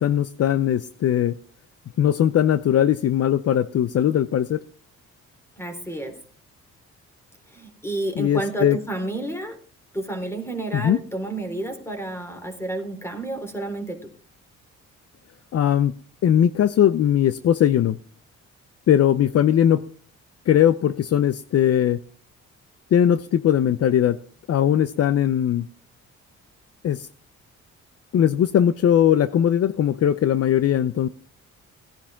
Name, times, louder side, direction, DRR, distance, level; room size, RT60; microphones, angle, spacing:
voice 1, 0.0-1.3 2.0-4.6 8.2-8.8 10.7-11.0 15.5-15.9 16.2-18.0 18.9-19.8 20.5-22.0 22.9-24.2 24.5-25.7 26.8-27.1 28.1-31.1, left 10 dB, 55° left, 14 dB, 0.7 m, -19 dB
voice 2, 5.6-6.2 7.5-9.6 9.9-14.1, right 2 dB, 10° left, 5 dB, 3.9 m, -30 dB
18.0 x 10.0 x 3.7 m, 0.43 s
cardioid pair, 90°, 30 cm